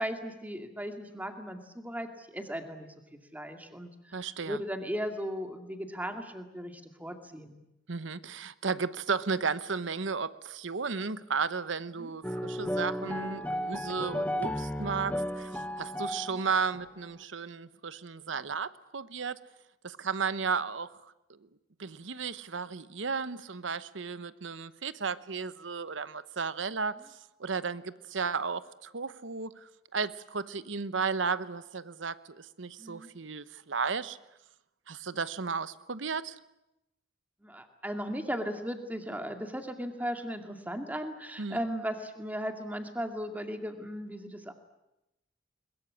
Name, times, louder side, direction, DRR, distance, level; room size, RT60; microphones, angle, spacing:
voice 1, 0.0-4.2 4.4-7.6 12.0-12.1 32.8-33.1 37.4-44.5, equal, 10° right, 5 dB, 2.3 m, -37 dB
voice 2, 4.1-4.6 7.9-19.4 19.8-20.9 21.8-34.2 34.9-36.4 41.4-41.6, right 5 dB, 85° right, 15 dB, 1.0 m, -34 dB
sound 1, 12.2-16.9, equal, 10° left, 1.0 m, -34 dB
22.0 x 21.5 x 9.8 m, 0.91 s
head